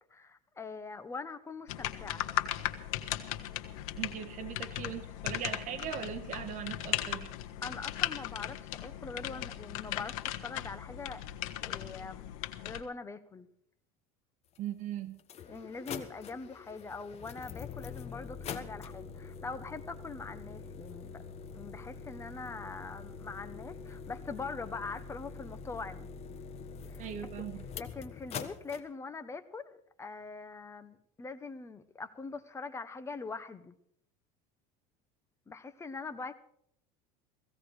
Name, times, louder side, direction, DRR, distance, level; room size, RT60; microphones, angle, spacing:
voice 1, 0.1-2.3 7.6-11.2 11.6-12.2 12.6-13.5 15.5-21.2 21.5-26.1 26.9-27.1 27.3-27.5 27.8-33.8 35.5-36.3, left 4 dB, 15° left, 10 dB, 1.2 m, -43 dB
sound 1, 1.7-12.8, left 13 dB, 85° left, 1.4 m, -37 dB
voice 2, 4.0-7.3 14.6-15.2 27.0-27.7, right 9 dB, 45° right, 10 dB, 1.7 m, -39 dB
sound 2, 14.6-14.7 15.2-28.8, left 6 dB, 35° left, 1.5 m, -44 dB
16.5 x 16.5 x 4.9 m, 0.67 s
cardioid pair, 140°, 18 cm